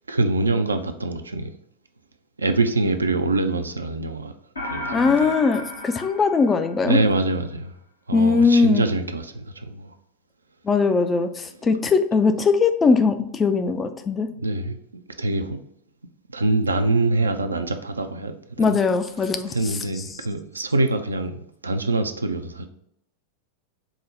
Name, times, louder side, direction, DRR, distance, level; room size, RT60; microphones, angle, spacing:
voice 1, 0.1-1.5 2.4-4.3 4.6-5.1 6.8-7.7 8.1-9.9 14.4-15.6 16.3-18.8 19.5-22.7, right 2 dB, 75° right, 0.3 m, -24 dB
sound 1, 4.6-7.2, left 2 dB, 75° left, 0.8 m, -33 dB
voice 2, 4.9-7.0 8.1-8.8 10.6-14.3 18.6-20.1, left 4 dB, 20° left, 0.3 m, -20 dB
4.8 x 2.0 x 3.8 m
figure-of-eight pair, 90°, 0 cm